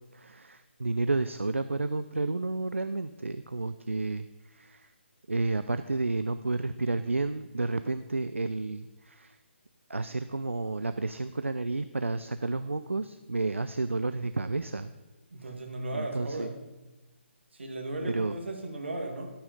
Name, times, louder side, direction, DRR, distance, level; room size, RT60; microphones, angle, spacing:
voice 1, 0.1-4.9 5.3-9.4 9.9-14.9 15.4-15.5 15.9-16.5 18.1-18.4, right 3 dB, 80° right, 11 dB, 0.4 m, -31 dB
voice 2, 15.3-16.6 17.5-19.3, right 2 dB, 60° right, 2 dB, 1.9 m, -36 dB
13.0 x 5.6 x 5.2 m, 1.1 s
figure-of-eight pair, 145°, 7 cm